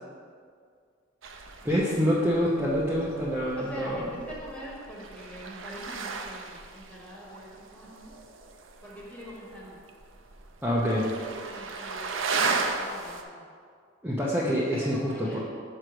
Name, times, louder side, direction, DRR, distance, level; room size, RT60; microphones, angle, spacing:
sound 1, 1.2-13.2, right 4 dB, 75° right, 0.6 m, -36 dB
voice 1, 1.6-4.2 10.6-11.1 14.0-15.4, equal, 10° right, -7 dB, 0.8 m, -26 dB
voice 2, 3.5-8.1 8.8-9.8 11.3-12.2 12.5-13.4 14.7-15.4, equal, 5° left, -6 dB, 1.6 m, -44 dB
6.4 x 4.7 x 6.2 m, 2.1 s
head